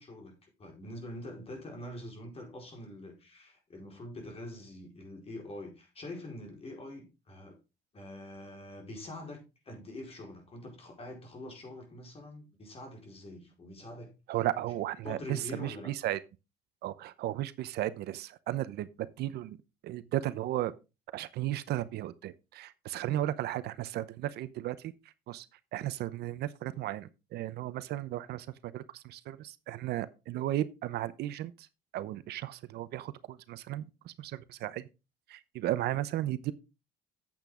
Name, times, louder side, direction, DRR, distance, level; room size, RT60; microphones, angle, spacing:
voice 1, 0.0-7.6 7.9-14.4 15.0-15.9, left 1 dB, 35° left, 4.7 m, -45 dB
voice 2, 14.3-16.2 16.8-19.6 19.8-20.7 21.1-24.9 25.3-25.5 25.7-31.7 31.9-34.8 35.3-36.5, right 13 dB, 75° right, 0.8 m, -35 dB
8.7 x 8.3 x 3.7 m
cardioid pair, 110°, 17 cm